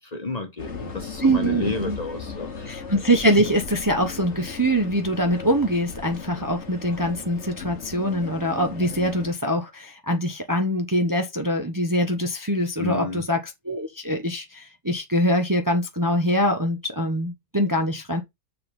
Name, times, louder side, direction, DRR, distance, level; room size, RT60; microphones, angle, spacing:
voice 1, 0.1-2.8 12.8-13.2, left 2 dB, 30° left, 1.3 m, -31 dB
sound 1, 0.6-9.3, left 5 dB, 60° left, 1.7 m, -37 dB
voice 2, 1.2-2.0 2.7-18.2, equal, 15° right, 0.9 m, -23 dB
7.0 x 4.0 x 5.3 m
omnidirectional pair, 1.4 m